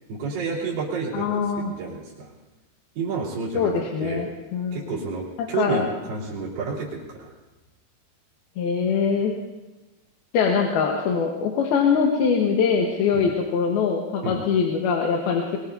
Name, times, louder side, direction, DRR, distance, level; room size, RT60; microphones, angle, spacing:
voice 1, 0.1-2.3 3.0-3.7 4.0-4.3 4.7-7.3 13.1-13.3 14.2-14.4, right 4 dB, 75° right, -5 dB, 5.3 m, -30 dB
voice 2, 1.1-1.7 3.5-5.0 5.4-5.9 8.6-9.3 10.3-15.6, left 6 dB, 80° left, 0 dB, 3.2 m, -23 dB
23.0 x 22.0 x 2.8 m, 1.1 s
omnidirectional pair, 4.5 m